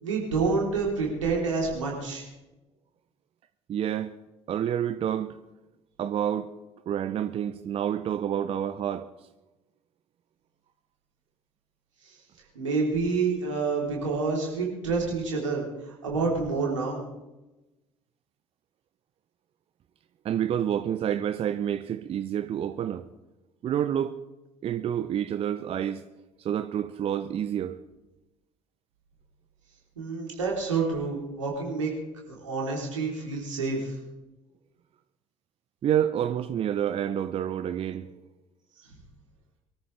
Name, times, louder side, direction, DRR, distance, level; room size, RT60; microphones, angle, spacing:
voice 1, 0.0-2.2 12.6-15.7 16.0-17.0 30.0-31.9 32.3-33.9, right 4 dB, 80° right, 3.7 m, -28 dB
voice 2, 3.7-4.1 4.5-5.4 6.0-6.5 6.9-9.1 20.2-23.0 23.6-24.1 24.6-26.0 26.4-27.8 35.8-38.1, right 10 dB, 40° right, 0.7 m, -28 dB
23.5 x 13.5 x 3.4 m
figure-of-eight pair, 55°, 16 cm